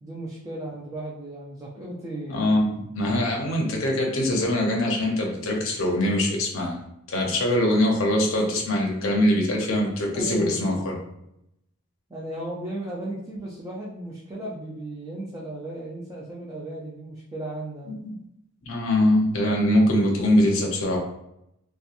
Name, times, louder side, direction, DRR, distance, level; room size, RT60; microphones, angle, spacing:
voice 1, 0.0-2.6 10.1-10.8 12.1-17.9, right 1 dB, 15° right, -6 dB, 0.4 m, -36 dB
voice 2, 2.3-6.8 7.1-10.9 18.0-18.2 18.6-21.0, left 1 dB, 60° left, -1 dB, 0.6 m, -23 dB
2.8 x 2.2 x 2.4 m, 0.81 s
head